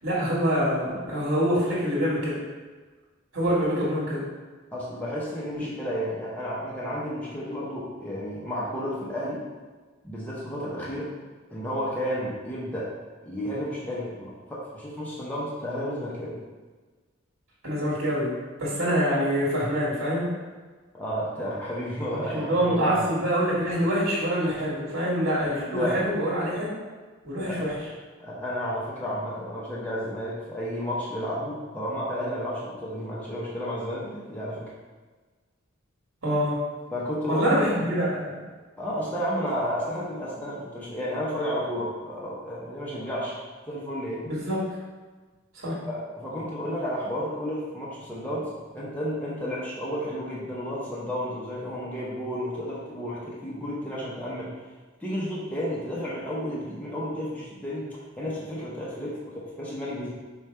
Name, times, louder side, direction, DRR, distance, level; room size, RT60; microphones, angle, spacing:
voice 1, 0.0-2.4 3.3-4.3 5.5-5.7 17.6-20.3 22.1-26.8 27.2-27.9 36.2-36.6 37.3-38.4 44.2-44.8 45.5-45.8, equal, 70° right, -8 dB, 1.3 m, -25 dB
voice 2, 4.7-9.4 10.0-11.1 11.5-12.9 13.2-16.4 20.9-23.0 25.7-26.1 27.5-27.6 28.2-34.7 36.9-37.6 38.8-43.4 43.7-44.2 45.9-48.5 48.7-54.5 55.0-60.1, equal, 10° left, -7 dB, 0.7 m, -32 dB
5.0 x 2.3 x 4.3 m, 1.4 s
head